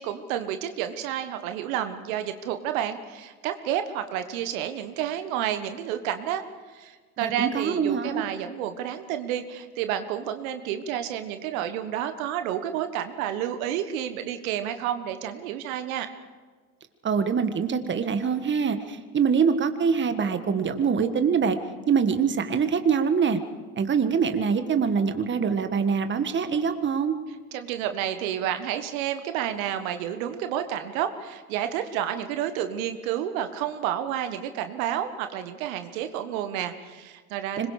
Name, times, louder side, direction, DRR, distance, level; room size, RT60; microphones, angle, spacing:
voice 1, 0.0-6.4 6.7-16.1 27.5-37.7, right 10 dB, 65° right, 8 dB, 1.5 m, -30 dB
voice 2, 7.2-8.2 17.0-21.6 21.9-23.4 23.7-27.1 37.6-37.7, right 6 dB, 25° right, 8 dB, 1.7 m, -24 dB
25.5 x 21.5 x 5.0 m, 1.4 s
hypercardioid pair, 80°, 45 cm